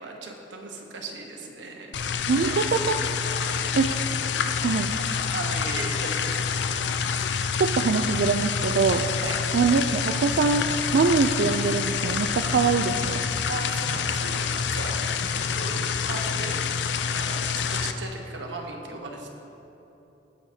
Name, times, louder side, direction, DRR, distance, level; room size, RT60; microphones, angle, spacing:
voice 1, 0.0-2.3 3.5-3.8 5.3-6.4 9.2-9.4 13.2-15.0 15.4-16.6 16.9-19.3, right 2 dB, 85° right, 1 dB, 1.1 m, -37 dB
sound 1, 1.9-17.9, left 6 dB, 70° left, 0.4 m, -27 dB
voice 2, 2.3-3.0 3.4-3.9 4.6-4.9 7.6-9.0 9.5-10.7 10.9-13.2, right 5 dB, 60° right, 4 dB, 0.3 m, -23 dB
18.0 x 6.5 x 2.8 m, 3.0 s
head